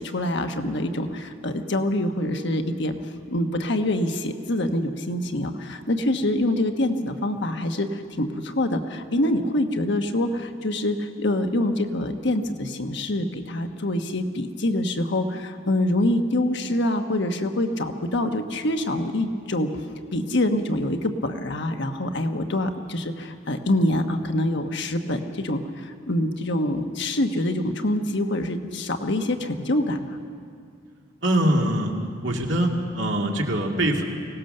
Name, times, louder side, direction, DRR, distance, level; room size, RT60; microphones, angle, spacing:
voice 1, 0.0-2.9 3.3-19.7 20.1-30.1, left 1 dB, 60° left, 6 dB, 1.3 m, -25 dB
voice 2, 31.2-31.9 32.2-34.0, right 1 dB, 65° right, 1 dB, 2.3 m, -23 dB
23.5 x 18.0 x 6.7 m, 2.3 s
head